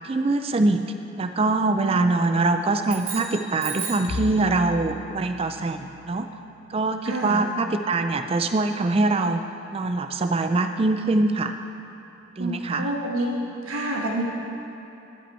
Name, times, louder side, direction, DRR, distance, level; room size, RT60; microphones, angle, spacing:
voice 1, 0.0-0.8 1.2-6.3 6.7-9.4 9.7-11.5 12.4-12.9, right 2 dB, 25° right, 7 dB, 0.3 m, -23 dB
sound 1, 2.8-4.2, right 5 dB, 70° right, 2.3 m, -34 dB
Bowed string instrument, 4.1-8.7, left 3 dB, 80° left, 0.6 m, -39 dB
voice 2, 7.0-7.5 12.4-14.2, right 1 dB, 90° right, -2 dB, 1.4 m, -28 dB
14.0 x 5.3 x 4.4 m, 3.0 s
head